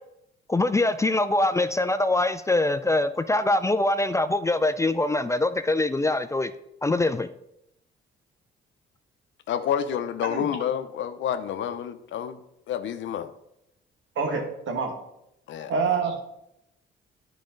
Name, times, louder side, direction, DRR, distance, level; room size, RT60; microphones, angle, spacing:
voice 1, 0.5-6.5 6.8-7.3, left 2 dB, 15° left, 0.4 m, -23 dB
voice 2, 9.5-12.4 12.7-13.3 15.5-15.7, left 9 dB, 70° left, 0.7 m, -29 dB
voice 3, 14.2-14.9 15.7-16.3, right 5 dB, 75° right, 1.9 m, -27 dB
10.5 x 5.0 x 3.9 m
cardioid pair, 90°, 20 cm